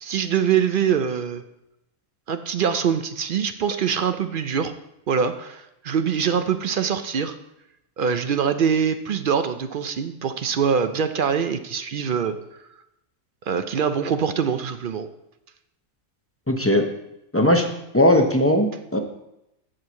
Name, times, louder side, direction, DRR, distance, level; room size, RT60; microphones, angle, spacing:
voice 1, 0.0-1.4 2.3-4.7 5.1-7.4 8.0-12.4 13.5-15.1, right 7 dB, 60° right, 9 dB, 0.5 m, -23 dB
voice 2, 16.5-16.9 17.3-17.7 17.9-19.0, left 1 dB, 15° left, 3 dB, 0.5 m, -18 dB
7.5 x 4.6 x 7.0 m, 0.86 s
omnidirectional pair, 1.4 m